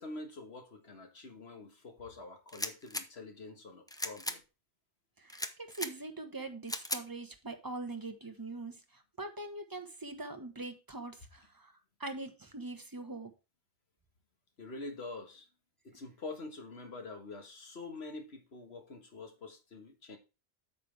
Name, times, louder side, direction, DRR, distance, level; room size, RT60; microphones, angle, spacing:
voice 1, 0.0-4.4 14.6-15.5 15.8-20.2, left 3 dB, 65° left, 1.8 m, -46 dB
sound 1, 2.5-3.1 3.9-4.4 5.3-5.9 6.7-7.0, left 1 dB, 5° left, 0.4 m, -37 dB
voice 2, 5.2-13.3, right 2 dB, 20° right, 1.1 m, -43 dB
8.8 x 6.2 x 3.4 m
omnidirectional pair, 1.2 m